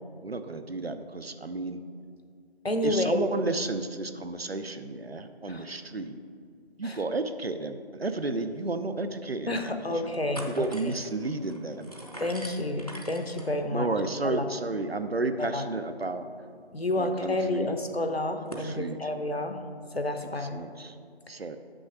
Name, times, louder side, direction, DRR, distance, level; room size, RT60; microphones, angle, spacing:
voice 1, 0.2-1.8 2.8-6.2 6.8-10.2 10.4-11.9 13.7-16.3 16.9-17.7 18.6-19.1 20.4-21.0 21.3-21.6, right 3 dB, 65° right, 9 dB, 0.7 m, -32 dB
voice 2, 2.6-3.3 5.5-5.6 6.8-6.9 9.5-10.7 12.2-13.9 14.2-14.4 15.4-15.6 16.7-19.6 19.9-20.6, left 1 dB, 70° left, 5 dB, 1.0 m, -29 dB
sound 1, 8.3-8.4 8.7-8.8 9.3-9.8 10.1-18.7, right 1 dB, 35° left, 0.7 m, -47 dB
6.2 x 5.9 x 6.5 m, 2.2 s
figure-of-eight pair, 175°, 32 cm